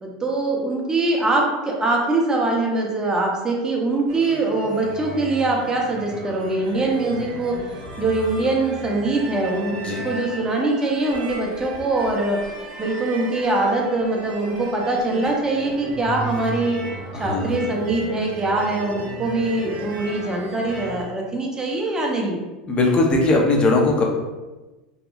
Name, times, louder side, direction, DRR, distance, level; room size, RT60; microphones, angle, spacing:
voice 1, 0.0-7.5 8.0-12.4 12.8-16.8 17.1-22.4, right 2 dB, 20° right, -1 dB, 0.6 m, -23 dB
sound 1, 4.1-21.0, right 2 dB, 45° right, 0.9 m, -35 dB
voice 2, 9.7-10.1 17.1-17.6 22.7-24.0, left 2 dB, 30° left, 0 dB, 0.6 m, -19 dB
2.8 x 2.3 x 2.3 m, 1.1 s
hypercardioid pair, 95°, 4 cm